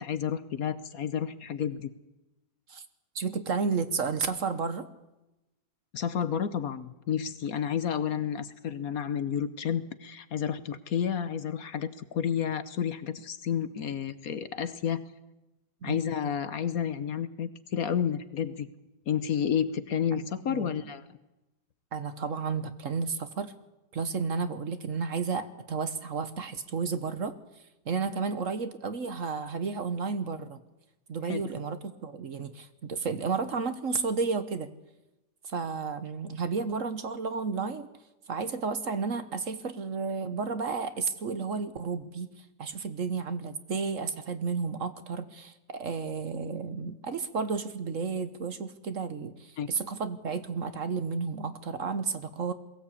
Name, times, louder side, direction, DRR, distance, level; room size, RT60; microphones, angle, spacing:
voice 1, 0.0-1.9 5.9-15.0 15.8-18.7 19.1-21.0 31.2-31.4 49.6-49.7, left 8 dB, 60° left, 13 dB, 1.3 m, -31 dB
voice 2, 3.1-4.9 15.8-16.0 20.1-20.8 21.9-23.5 23.9-27.3 27.8-30.6 31.1-34.7 35.4-37.9 38.3-42.3 42.6-52.5, right 5 dB, 50° right, 11 dB, 1.3 m, -32 dB
22.0 x 16.0 x 8.5 m, 0.96 s
omnidirectional pair, 1.9 m